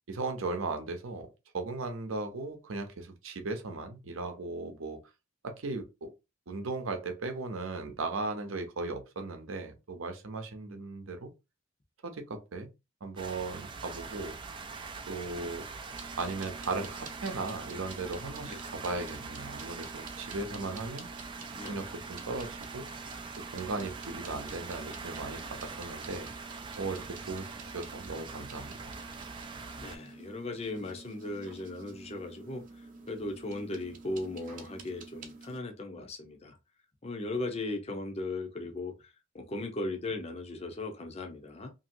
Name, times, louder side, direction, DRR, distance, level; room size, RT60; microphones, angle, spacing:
voice 1, 0.1-1.3 1.5-5.0 5.4-6.1 6.5-11.3 12.0-12.7 13.0-14.4 15.1-15.7 16.2-21.1 21.6-22.9 23.5-26.3 26.8-27.5 27.7-28.7, right 3 dB, 80° right, 0.7 m, -37 dB
sound 1, 13.2-30.0, right 4 dB, 25° right, 0.3 m, -43 dB
sound 2, 15.9-35.6, right 3 dB, 40° right, 0.7 m, -49 dB
voice 2, 20.4-21.1 21.5-21.8 23.7-23.9 29.8-36.6 37.0-41.7, left 2 dB, 30° left, 0.6 m, -38 dB
2.9 x 2.7 x 2.6 m
head